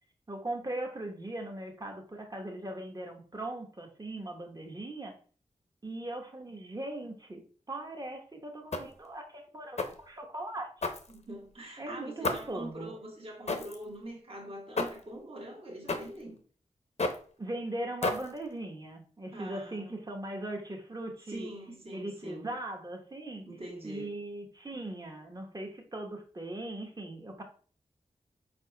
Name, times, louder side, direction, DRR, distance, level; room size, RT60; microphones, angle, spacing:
voice 1, 0.3-5.2 5.8-10.7 11.8-12.9 17.4-21.5 21.9-23.4 23.8-27.4, right 1 dB, 30° right, 2 dB, 1.0 m, -39 dB
sound 1, 8.7-9.1 9.8-10.1 10.8-11.5 12.2-12.6 13.5-13.8 14.8-15.1 15.9-16.2 17.0-17.3 18.0-18.5, left 3 dB, 55° left, 0.7 m, -33 dB
voice 2, 11.1-16.4 19.3-20.0 21.3-22.5 23.5-24.2, right 1 dB, 45° right, -1 dB, 1.4 m, -44 dB
4.3 x 4.2 x 2.2 m, 0.42 s
cardioid pair, 45°, 13 cm